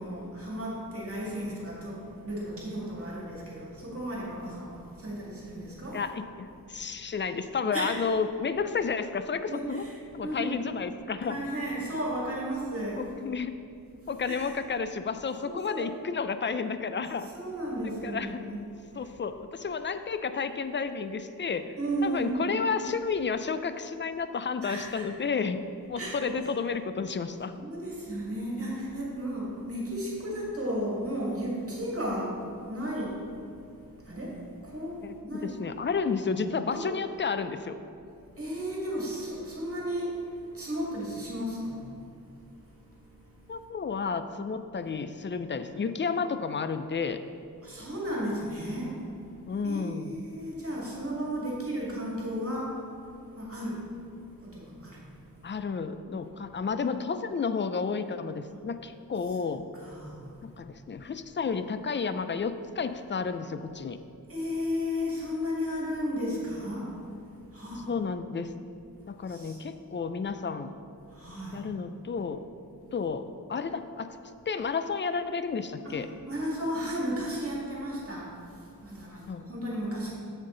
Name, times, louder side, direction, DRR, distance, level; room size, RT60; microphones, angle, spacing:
voice 1, 0.0-6.0 7.7-7.9 9.5-9.9 10.2-10.6 11.3-13.1 14.2-14.4 15.4-15.9 17.3-18.6 21.8-22.5 24.6-25.1 26.0-26.4 27.6-32.4 32.7-33.2 34.1-34.4 34.6-35.6 36.1-36.2 36.7-36.9 38.4-40.2 40.5-41.8 47.6-49.0 49.6-52.8 53.4-53.8 54.4-55.0 59.7-60.2 64.3-66.9 67.5-67.9 69.3-69.6 71.1-71.6 75.8-76.0 76.3-78.3 78.8-80.1, equal, 40° right, -4 dB, 2.1 m, -34 dB
voice 2, 5.9-9.9 10.1-11.4 13.0-13.6 14.1-17.3 18.0-18.4 18.9-21.7 22.0-25.6 25.9-27.5 35.0-35.1 35.4-37.8 43.5-47.2 49.5-50.2 55.4-59.7 60.4-64.0 67.9-68.5 69.1-70.7 71.5-72.4 72.9-74.2 74.5-76.1 79.3-79.5, left 5 dB, 35° left, 10 dB, 0.4 m, -31 dB
7.5 x 7.3 x 3.8 m, 2.5 s
wide cardioid pair, 85°, 35 cm